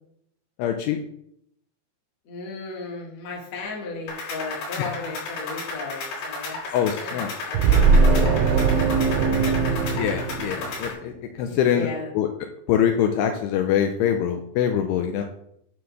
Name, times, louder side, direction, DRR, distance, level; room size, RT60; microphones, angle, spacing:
voice 1, 0.6-1.0 4.8-4.9 6.7-7.3 10.0-11.9 12.1-12.3 12.7-15.2, left 9 dB, 85° left, 5 dB, 2.5 m, -24 dB
voice 2, 2.2-6.6 7.0-9.1 9.5-9.7 11.5-12.1, left 3 dB, 50° left, -1 dB, 2.2 m, -36 dB
sound 1, 4.1-10.9, left 3 dB, 65° left, 4.8 m, -34 dB
sound 2, 7.5-11.0, right 4 dB, 90° right, 3.2 m, -20 dB
9.5 x 3.9 x 6.4 m, 0.72 s
omnidirectional pair, 5.4 m